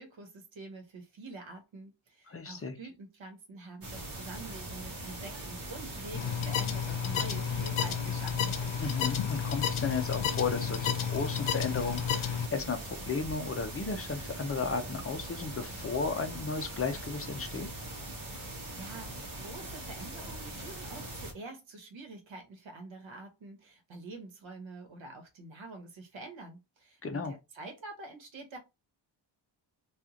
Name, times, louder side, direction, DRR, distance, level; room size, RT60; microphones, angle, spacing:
voice 1, 0.0-8.6 18.4-28.6, right 3 dB, 75° right, 1.2 m, -47 dB
voice 2, 2.3-2.8 8.8-17.7 27.0-27.3, left 4 dB, 30° left, 0.6 m, -34 dB
sound 1, 3.8-21.3, right 1 dB, 45° right, 1.0 m, -41 dB
sound 2, 6.1-12.5, left 8 dB, 90° left, 0.7 m, -31 dB
3.0 x 2.5 x 3.7 m
wide cardioid pair, 175°, 47 cm